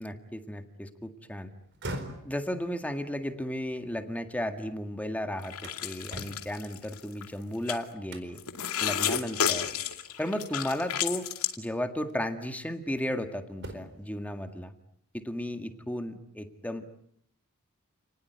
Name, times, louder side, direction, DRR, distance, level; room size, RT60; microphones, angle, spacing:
voice 1, 0.0-1.5 2.2-8.4 8.8-9.7 10.2-11.3 11.6-14.7 15.1-16.9, left 1 dB, 5° left, 7 dB, 1.9 m, -34 dB
sound 1, 1.6-4.7 5.1-7.5 8.1-8.5 9.0-9.1 9.6-10.1 11.3-11.5 12.1-13.2 13.5-14.1, right 1 dB, 55° right, 4.5 m, -44 dB
sound 2, 5.4-7.3 7.7-7.8 8.4-11.6, left 8 dB, 75° left, 2.4 m, -31 dB
30.0 x 20.0 x 9.3 m, 0.71 s
head